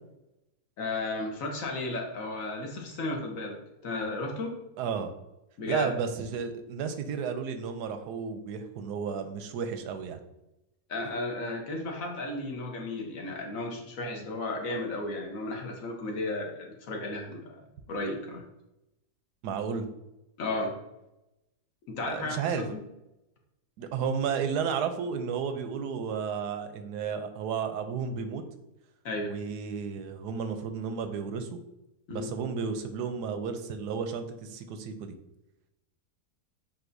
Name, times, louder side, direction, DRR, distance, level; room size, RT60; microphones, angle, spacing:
voice 1, 0.8-4.6 5.6-5.9 10.9-17.6 17.9-18.4 20.4-20.7 21.9-22.8 29.0-29.3 32.1-32.3, left 2 dB, 60° left, 1 dB, 1.3 m, -34 dB
voice 2, 4.8-5.1 5.7-10.2 19.4-19.9 22.1-22.6 23.8-28.4 29.2-31.5 32.1-35.1, right 6 dB, 90° right, 8 dB, 1.2 m, -32 dB
7.5 x 2.7 x 2.6 m, 0.91 s
omnidirectional pair, 1.7 m